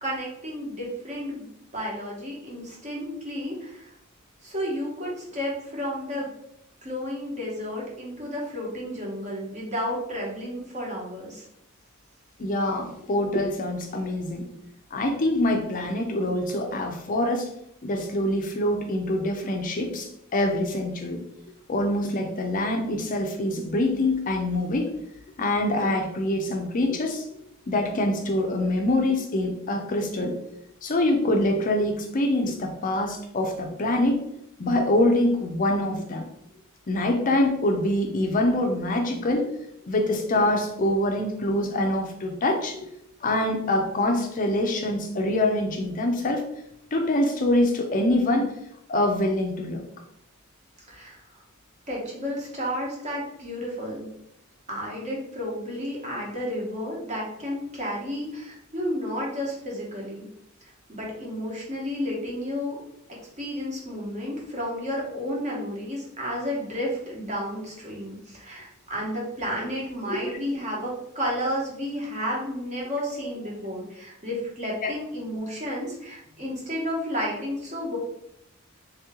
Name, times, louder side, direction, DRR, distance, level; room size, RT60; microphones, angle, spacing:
voice 1, 0.0-1.5 1.7-3.9 4.4-6.3 6.8-11.4 50.9-51.2 51.9-54.1 54.7-60.3 60.6-62.8 63.4-78.0, equal, 35° right, -3 dB, 1.2 m, -32 dB
voice 2, 12.4-14.4 14.9-17.5 17.8-21.2 21.7-24.9 25.4-27.4 27.7-30.3 30.8-34.2 34.6-36.2 36.9-39.5 39.9-42.9 43.2-46.4 46.9-48.5 48.9-49.8 70.1-70.3 73.1-73.2 74.8-74.9, left 1 dB, 40° left, 3 dB, 0.5 m, -25 dB
3.3 x 3.0 x 3.6 m, 0.77 s
head